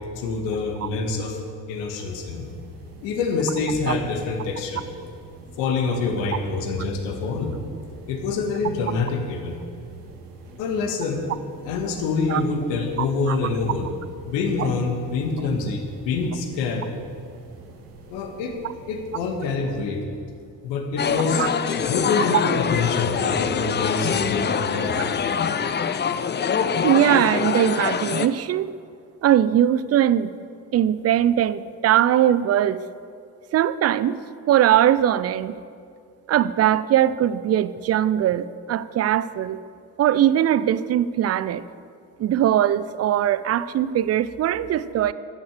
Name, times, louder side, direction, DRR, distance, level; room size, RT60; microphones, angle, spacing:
voice 1, 0.2-1.4 1.7-2.5 3.0-4.8 5.6-7.6 8.1-9.6 10.6-11.2 11.6-13.9 14.2-16.9 18.1-18.5 18.9-20.0 20.6-21.4 21.8-25.0, left 4 dB, 60° left, 3 dB, 2.1 m, -26 dB
sound 1, 2.0-19.4, right 3 dB, 70° right, 1.7 m, -46 dB
sound 2, 21.0-28.3, left 7 dB, 20° left, 0.6 m, -24 dB
voice 2, 26.8-28.7 29.2-30.3 30.7-32.8 33.5-34.2 34.5-35.5 36.3-39.6 40.0-41.6 42.2-45.1, right 11 dB, 30° right, 16 dB, 0.6 m, -20 dB
12.0 x 10.5 x 6.6 m, 2.3 s
figure-of-eight pair, 50°, 48 cm